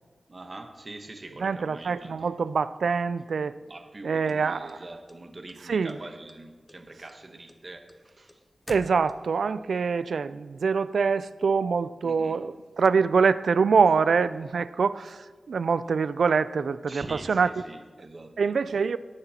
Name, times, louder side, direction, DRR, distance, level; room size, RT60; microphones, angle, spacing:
voice 1, 0.3-2.3 3.6-8.4 12.0-12.4 16.9-18.3, right 2 dB, 35° right, 1.0 m, -43 dB
voice 2, 1.4-3.5 4.0-4.7 5.7-5.9 8.7-17.5 18.4-19.0, right 5 dB, 85° right, 0.3 m, -25 dB
sound 1, 4.3-5.5 5.9-6.4 6.7-9.5, left 1 dB, 20° left, 0.7 m, -47 dB
17.5 x 9.8 x 2.9 m
wide cardioid pair, 115°, 0 cm